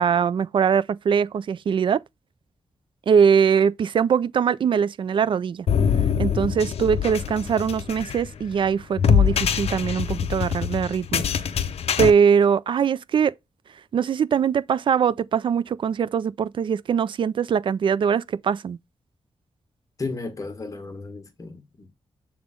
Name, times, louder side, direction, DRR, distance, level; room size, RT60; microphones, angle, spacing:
voice 1, 0.0-2.0 3.1-5.7 6.2-11.2 12.0-13.3 13.9-18.8, right 7 dB, 55° right, 0.4 m, -22 dB
sound 1, 5.7-12.1, left 7 dB, 90° left, 0.8 m, -24 dB
voice 2, 20.0-21.9, left 3 dB, 35° left, 1.5 m, -34 dB
7.0 x 3.7 x 5.0 m
wide cardioid pair, 170°, 10 cm